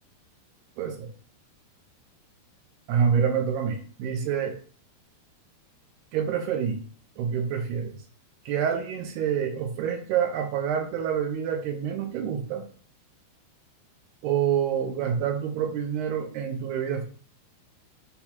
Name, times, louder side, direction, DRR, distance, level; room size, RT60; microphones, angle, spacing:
voice 1, 0.8-1.1 2.9-4.6 6.1-6.8 7.2-8.0 8.5-12.6 14.2-17.1, right 8 dB, 80° right, 4 dB, 3.1 m, -27 dB
10.5 x 4.1 x 2.9 m, 0.43 s
omnidirectional pair, 4.8 m